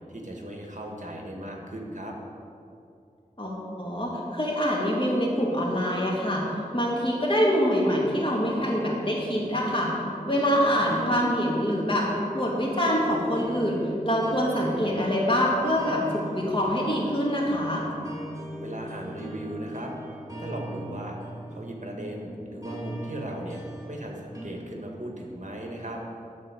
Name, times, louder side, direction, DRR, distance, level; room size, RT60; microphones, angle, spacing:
voice 1, 0.1-2.1 18.6-19.9 20.4-21.2 21.5-26.0, right 1 dB, 60° right, 0 dB, 1.5 m, -37 dB
voice 2, 3.4-6.4 6.7-9.9 10.3-12.1 12.3-13.8 14.0-17.8, equal, 35° left, -3 dB, 2.3 m, -25 dB
sound 1, 8.5-24.5, right 1 dB, 25° right, 2.4 m, -40 dB
12.5 x 4.3 x 7.3 m, 2.6 s
wide cardioid pair, 50°, 14 cm